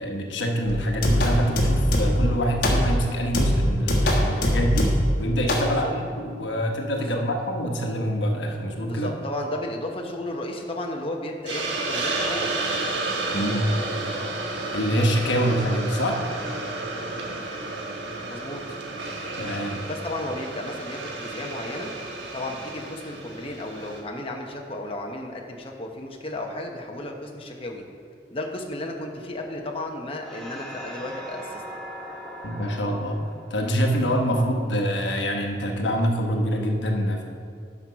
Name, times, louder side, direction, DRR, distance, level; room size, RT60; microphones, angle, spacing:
voice 1, 0.0-9.1 13.3-13.7 14.7-16.2 19.4-19.8 32.4-33.2 33.5-37.2, equal, 85° left, 2 dB, 1.1 m, -25 dB
sound 1, 0.7-2.3 2.6-3.0 3.3-5.2 5.5-5.7, equal, 55° left, 1.5 m, -22 dB
voice 2, 6.9-7.2 8.9-12.6 18.3-18.8 19.9-21.9 22.3-27.8 28.3-31.6, left 1 dB, 30° left, 1 dB, 0.9 m, -34 dB
Hiss, 11.5-24.0, right 2 dB, 80° right, 1.3 m, -31 dB
sound 2, 30.2-35.0, equal, 5° left, 1.3 m, -41 dB
10.0 x 6.2 x 5.7 m, 2.3 s
head